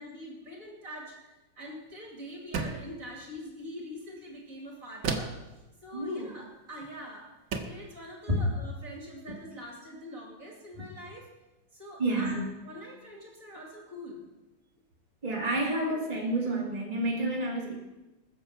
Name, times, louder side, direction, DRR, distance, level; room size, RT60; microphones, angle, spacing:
voice 1, 0.0-5.4 5.8-7.3 7.6-11.3 11.7-14.2, equal, 45° right, -1 dB, 2.9 m, -44 dB
sound 1, 2.5-3.0 5.0-5.5 6.8-7.0 7.5-7.9, right 4 dB, 70° right, 1.8 m, -33 dB
voice 2, 5.9-6.3 8.3-8.4 12.0-12.4 15.2-17.7, right 1 dB, 20° right, -3 dB, 2.4 m, -29 dB
20.5 x 7.2 x 5.7 m, 1.1 s
omnidirectional pair, 2.1 m